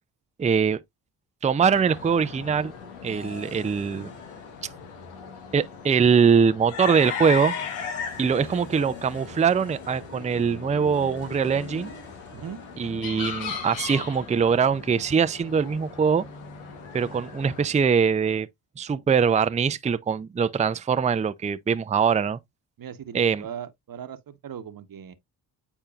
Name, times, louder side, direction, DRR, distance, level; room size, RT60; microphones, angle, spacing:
voice 1, 0.4-0.8 1.4-2.7 3.0-4.1 5.5-7.5 8.2-11.9 12.8-16.3 16.9-18.5 18.8-22.4 23.1-23.4, right 6 dB, 15° right, 0.5 m, -22 dB
sound 1, 1.6-17.7, left 6 dB, 90° left, 1.2 m, -38 dB
sound 2, 3.1-5.6 6.7-17.8, left 3 dB, 35° left, 3.0 m, -47 dB
voice 2, 22.8-25.2, right 8 dB, 45° right, 1.1 m, -39 dB
8.7 x 4.4 x 2.4 m
hypercardioid pair, 45°, 48 cm